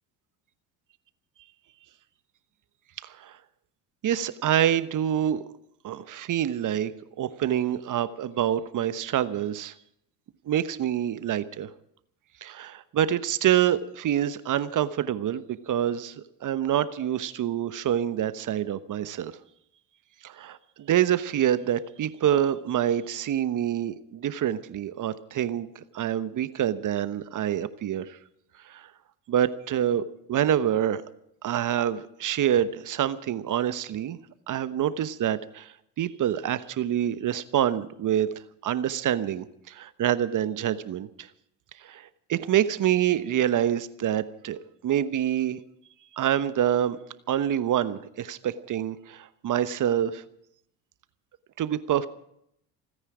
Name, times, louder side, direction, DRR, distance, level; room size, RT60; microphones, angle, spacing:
voice 1, 3.0-3.4 4.0-5.4 5.8-6.9 7.2-9.7 10.5-11.7 12.4-19.4 20.2-28.2 28.7-28.9 29.3-31.0 31.4-34.2 34.5-38.3 38.6-41.3 41.8-45.6 46.1-47.0 47.3-50.2 51.6-52.1, right 10 dB, 40° right, 14 dB, 1.1 m, -26 dB
28.5 x 9.9 x 5.0 m, 0.74 s
hypercardioid pair, 70°, 46 cm